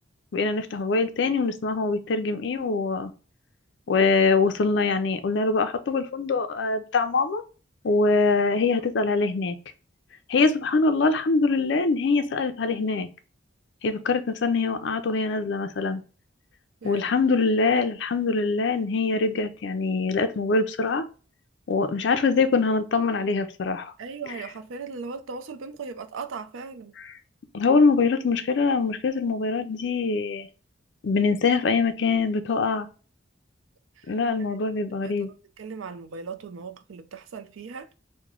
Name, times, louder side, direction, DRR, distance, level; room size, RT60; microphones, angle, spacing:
voice 1, 0.3-3.1 3.9-7.4 7.8-9.6 10.3-13.1 13.8-16.0 16.8-21.0 21.7-23.9 27.0-27.1 27.5-30.5 31.0-32.9 34.1-35.3, left 4 dB, 65° left, 0.4 m, -23 dB
voice 2, 24.0-26.9 34.0-34.5 35.0-35.1 35.6-37.9, right 5 dB, 85° right, 0.4 m, -38 dB
3.0 x 2.1 x 3.6 m
head